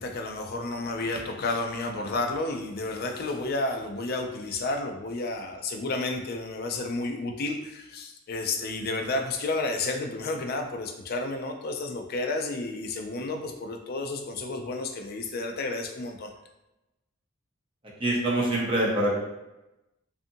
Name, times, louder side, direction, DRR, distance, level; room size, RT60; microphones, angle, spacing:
voice 1, 0.0-16.3, left 2 dB, 45° left, 4 dB, 0.3 m, -31 dB
voice 2, 18.0-19.2, right 1 dB, 25° right, -4 dB, 0.6 m, -24 dB
2.6 x 2.4 x 2.6 m, 0.95 s
head